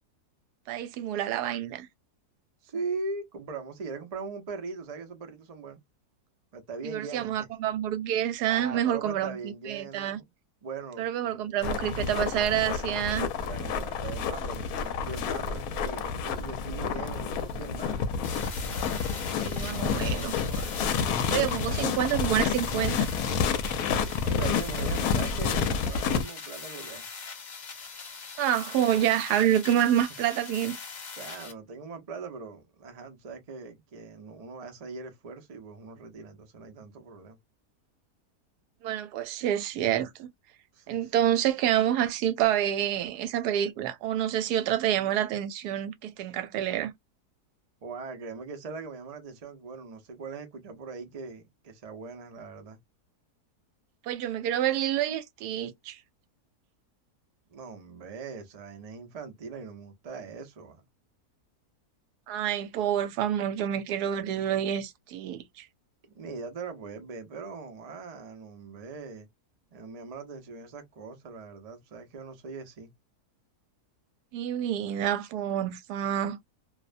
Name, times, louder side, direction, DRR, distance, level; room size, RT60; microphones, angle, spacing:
voice 1, 0.7-1.9 6.8-10.2 11.0-13.3 19.4-20.7 21.3-23.1 28.4-30.8 38.8-40.3 40.9-46.9 54.0-56.0 62.3-65.7 74.3-76.4, right 11 dB, 80° right, 1.1 m, -28 dB
voice 2, 2.6-5.8 6.5-7.5 8.4-10.2 10.6-11.6 13.4-18.1 20.7-21.9 24.2-27.1 29.9-30.0 31.1-37.4 40.7-41.1 47.8-52.8 57.5-60.8 66.1-69.3 69.7-72.9, right 4 dB, 55° right, 0.4 m, -41 dB
sound 1, 11.6-26.2, left 6 dB, 70° left, 1.0 m, -29 dB
sound 2, 18.2-31.5, left 5 dB, 90° left, 0.4 m, -42 dB
2.6 x 2.1 x 2.4 m
omnidirectional pair, 1.7 m